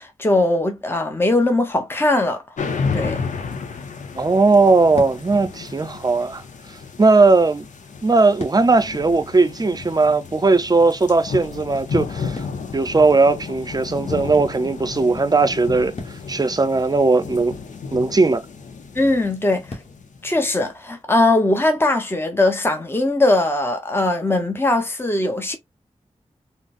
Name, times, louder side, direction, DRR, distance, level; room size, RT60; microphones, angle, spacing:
voice 1, 0.0-2.4 2.9-3.2 18.9-19.8 20.2-25.6, left 2 dB, 20° left, 0.7 m, -20 dB
sound 1, 2.6-20.4, left 5 dB, 85° left, 0.6 m, -32 dB
sound 2, 2.6-20.9, left 2 dB, 55° left, 1.2 m, -45 dB
voice 2, 4.2-6.4 7.0-7.7 8.0-12.4 12.7-15.9 16.3-17.6 17.9-18.4, right 3 dB, 30° right, 0.5 m, -18 dB
3.8 x 2.0 x 2.5 m
cardioid pair, 50°, 12 cm